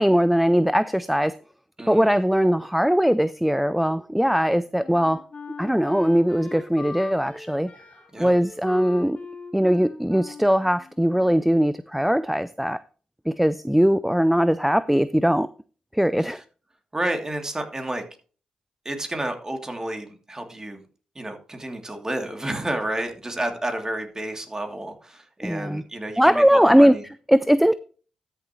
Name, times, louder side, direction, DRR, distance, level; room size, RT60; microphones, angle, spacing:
voice 1, 0.0-1.4 1.9-5.2 5.6-7.7 8.2-9.2 9.5-12.8 13.3-15.5 15.9-16.4 25.4-25.8 26.2-27.0 27.3-27.7, equal, 5° right, 0.4 m, -20 dB
voice 2, 1.8-2.1 8.1-8.3 16.2-16.4 16.9-18.0 18.8-20.8 21.1-27.0, right 1 dB, 20° right, 2.9 m, -30 dB
Wind instrument woodwind instrument, 4.8-11.6, left 3 dB, 45° left, 2.2 m, -41 dB
13.0 x 6.9 x 3.1 m
supercardioid pair, 45°, 3 cm